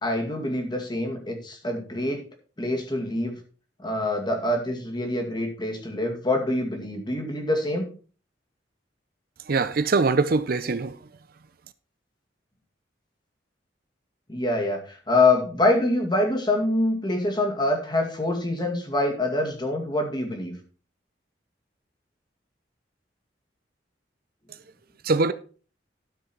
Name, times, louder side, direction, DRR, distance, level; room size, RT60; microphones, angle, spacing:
voice 1, 0.0-2.2 2.6-3.3 3.8-7.9 14.3-20.6, left 2 dB, 25° left, 2.2 m, -25 dB
voice 2, 9.5-11.0 25.0-25.3, right 3 dB, 55° right, 0.5 m, -22 dB
12.5 x 6.3 x 4.5 m
head